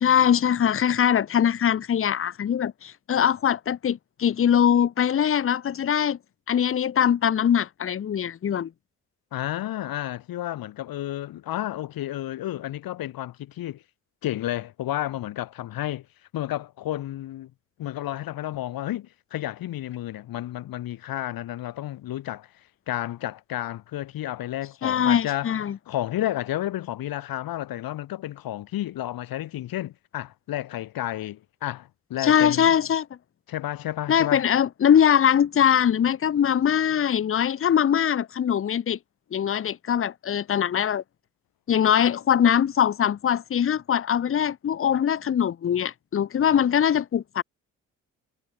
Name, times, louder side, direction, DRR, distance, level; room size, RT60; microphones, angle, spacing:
voice 1, 0.0-6.2 6.5-8.7 24.8-25.8 32.2-33.1 34.1-39.0 39.3-41.0 41.7-47.4, left 9 dB, 40° left, 0.8 m, -22 dB
voice 2, 9.3-13.8 14.2-16.0 16.3-17.5 17.8-22.5 22.9-25.5 25.9-32.7 33.5-34.4, left 14 dB, 75° left, 1.6 m, -31 dB
cardioid pair, 90°, 35 cm